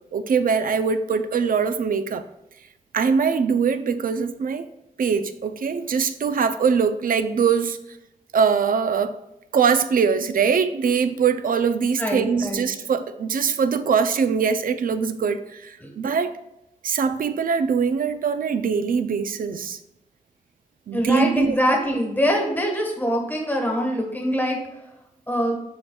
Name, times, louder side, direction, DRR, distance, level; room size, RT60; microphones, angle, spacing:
voice 1, 0.1-2.2 2.9-4.7 5.0-7.8 8.3-9.1 9.5-16.3 16.8-19.8 20.9-21.6, right 6 dB, 85° right, 11 dB, 0.5 m, -22 dB
voice 2, 12.0-12.7 15.8-15.9 20.9-24.6 25.3-25.6, equal, 10° left, 1 dB, 1.4 m, -23 dB
11.0 x 3.7 x 2.3 m, 0.89 s
wide cardioid pair, 130°, 14 cm